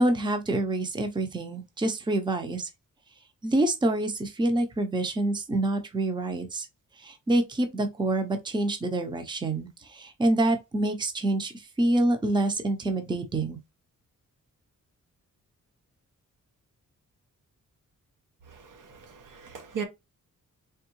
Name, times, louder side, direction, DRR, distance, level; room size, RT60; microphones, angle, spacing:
voice 1, 0.0-2.7 3.4-6.7 7.0-11.5 11.8-13.6, right 1 dB, 15° right, 0.6 m, -26 dB
voice 2, 18.5-19.8, right 6 dB, 75° right, 0.9 m, -38 dB
3.5 x 3.5 x 3.0 m
wide cardioid pair, 150°, 31 cm